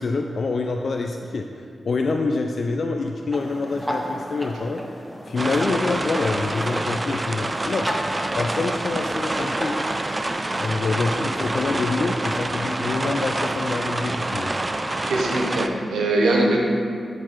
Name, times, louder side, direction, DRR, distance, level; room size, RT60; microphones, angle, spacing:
voice 1, 0.0-4.8 5.3-7.9 8.4-9.8 10.6-14.5, left 3 dB, 65° left, 3 dB, 0.3 m, -26 dB
sound 1, 3.3-10.7, equal, ahead, 0.8 m, -35 dB
sound 2, 5.4-15.7, right 2 dB, 30° right, 0.4 m, -27 dB
voice 2, 15.0-16.6, right 2 dB, 90° right, -1 dB, 0.7 m, -21 dB
6.4 x 4.0 x 4.5 m, 2.3 s
supercardioid pair, 40°, 0 cm